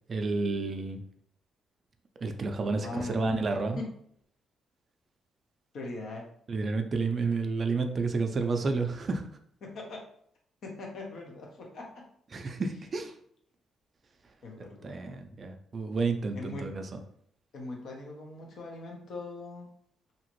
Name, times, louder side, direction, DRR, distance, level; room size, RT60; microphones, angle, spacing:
voice 1, 0.1-1.0 2.2-3.8 6.5-9.2 12.3-13.1 14.6-17.0, right 4 dB, 40° right, 6 dB, 0.4 m, -30 dB
voice 2, 2.8-3.5 3.8-3.9 5.7-6.3 9.6-10.0 10.6-12.1 14.4-15.2 16.3-16.7 17.5-19.7, left 2 dB, 65° left, 1 dB, 0.8 m, -40 dB
2.7 x 2.5 x 3.0 m, 0.68 s
cardioid pair, 90°, 0 cm